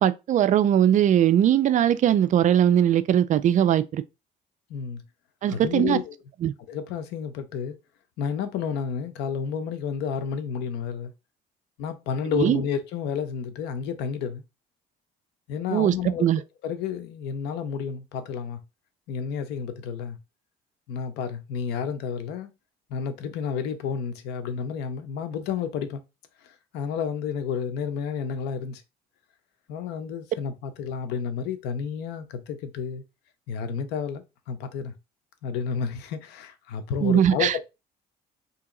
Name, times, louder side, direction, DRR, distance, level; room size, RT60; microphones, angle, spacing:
voice 1, 0.0-4.0 5.4-6.0 6.4-6.5 12.4-12.6 15.7-16.4 37.0-37.5, right 10 dB, 45° right, 0.4 m, -20 dB
voice 2, 4.7-5.0 5.5-6.2 6.7-7.8 8.2-11.1 11.8-14.4 15.5-16.2 16.6-18.6 19.1-20.2 20.9-22.5 22.9-26.0 26.4-28.8 29.7-33.0 33.5-34.9 35.4-37.6, left 7 dB, 90° left, 0.7 m, -31 dB
2.9 x 2.8 x 3.7 m
cardioid pair, 110°, 17 cm